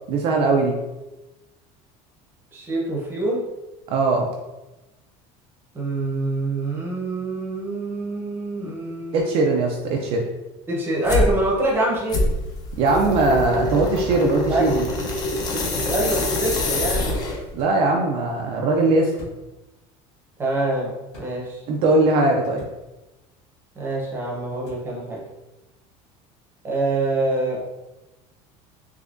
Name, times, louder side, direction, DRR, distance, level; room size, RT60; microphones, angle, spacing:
voice 1, 0.1-0.8 3.9-4.3 9.1-10.2 12.8-14.9 17.5-19.1 21.7-22.6, right 2 dB, 40° right, 1 dB, 0.4 m, -20 dB
voice 2, 2.5-3.4 5.7-9.2 10.7-12.3 14.5-14.7 15.6-17.2 20.4-21.6 23.8-25.2 26.6-27.6, right 2 dB, 15° right, -3 dB, 0.7 m, -25 dB
sound 1, 10.0-10.2 11.9-12.1 14.0-14.2 16.0-16.3 17.5-17.7 19.1-19.6 21.1-21.3 22.5-22.8 24.6-24.9, left 1 dB, 45° left, 1.4 m, -43 dB
sound 2, 11.0-11.3 12.1-17.5, left 1 dB, 25° left, 0.5 m, -24 dB
3.6 x 3.2 x 2.5 m, 1.0 s
cardioid pair, 180°, 15 cm